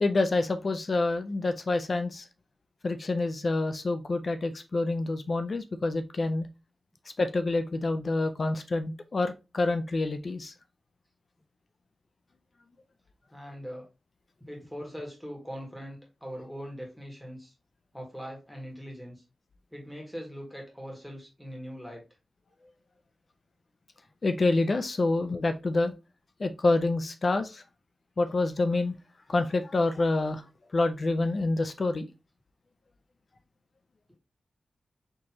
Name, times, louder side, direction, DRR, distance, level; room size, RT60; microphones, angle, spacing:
voice 1, 0.0-2.3 2.8-6.5 7.2-10.5 24.2-25.9 26.4-27.6 28.2-28.9 29.3-30.4 30.7-32.1, left 2 dB, 50° left, 8 dB, 0.4 m, -27 dB
voice 2, 13.3-13.9 14.5-17.5 17.9-19.2 19.7-22.0, equal, 5° left, 0 dB, 1.7 m, -41 dB
4.3 x 3.0 x 2.8 m, 0.27 s
wide cardioid pair, 105°, 0 cm